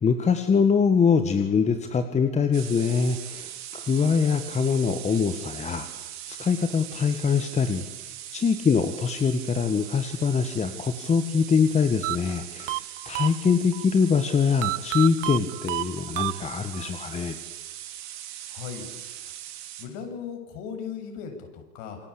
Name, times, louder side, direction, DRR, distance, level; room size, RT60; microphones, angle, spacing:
voice 1, 0.0-5.9 6.2-7.8 8.3-17.4, left 6 dB, 15° left, 8 dB, 1.6 m, -23 dB
sound 1, 2.5-19.9, right 12 dB, 35° right, 4.5 m, -40 dB
sound 2, 12.0-13.8 14.6-16.9, right 19 dB, 55° right, 0.9 m, -31 dB
voice 2, 18.5-19.3 19.8-22.0, left 7 dB, 45° left, 5 dB, 7.5 m, -38 dB
28.0 x 23.5 x 8.6 m, 1.1 s
hypercardioid pair, 120°, 46 cm